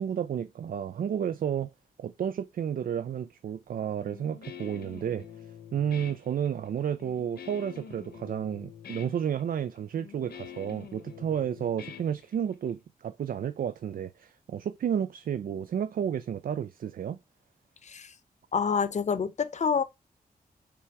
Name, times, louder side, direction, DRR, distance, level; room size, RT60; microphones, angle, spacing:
voice 1, 0.0-1.7 2.0-5.3 5.7-17.2, right 8 dB, 65° right, 0.4 m, -31 dB
Guitar, 4.1-12.7, left 8 dB, 90° left, 1.2 m, -46 dB
voice 2, 18.5-19.8, left 6 dB, 45° left, 0.7 m, -27 dB
5.8 x 3.4 x 4.7 m
wide cardioid pair, 100°, 16 cm